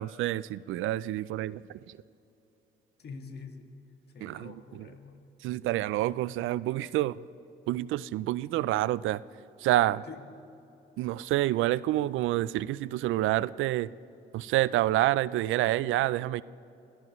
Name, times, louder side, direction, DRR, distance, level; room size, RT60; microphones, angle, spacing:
voice 1, 0.0-1.6 1.9-2.0 4.2-4.9 5.4-7.2 7.7-9.2 9.6-10.0 11.0-13.9 14.3-16.4, right 15 dB, 85° right, 19 dB, 0.4 m, -28 dB
voice 2, 3.0-3.8 4.1-5.4 10.0-10.4, left 4 dB, 55° left, 5 dB, 1.8 m, -46 dB
25.5 x 17.0 x 3.1 m, 2.8 s
cardioid pair, 90°, 20 cm